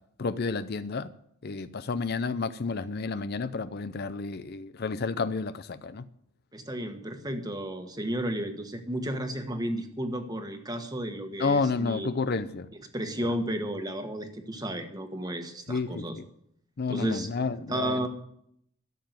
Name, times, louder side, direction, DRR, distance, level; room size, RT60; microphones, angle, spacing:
voice 1, 0.2-1.1 1.4-6.1 11.4-12.7 15.7-16.3 16.8-18.1, left 4 dB, 50° left, 0.5 m, -30 dB
voice 2, 6.5-12.1 12.9-16.2 16.9-17.3 17.7-18.1, right 1 dB, 20° right, 1.4 m, -33 dB
13.0 x 7.5 x 9.3 m
head